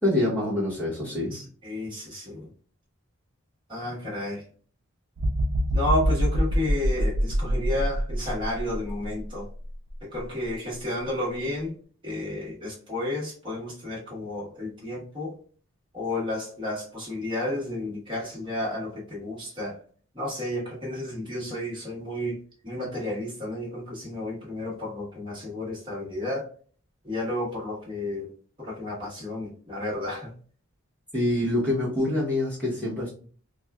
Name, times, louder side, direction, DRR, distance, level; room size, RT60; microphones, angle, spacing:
voice 1, 0.0-1.3 31.1-33.1, left 1 dB, 5° left, -7 dB, 1.2 m, -25 dB
voice 2, 1.3-2.5 3.7-4.4 5.7-9.5 10.0-11.7 12.0-15.3 15.9-19.8 20.1-22.4 22.6-26.5 27.0-28.3 28.6-30.3, left 1 dB, 20° right, -5 dB, 1.3 m, -32 dB
sound 1, 5.2-9.2 9.7-9.9, equal, 75° right, 0.5 m, -25 dB
4.2 x 2.3 x 2.3 m, 0.43 s
head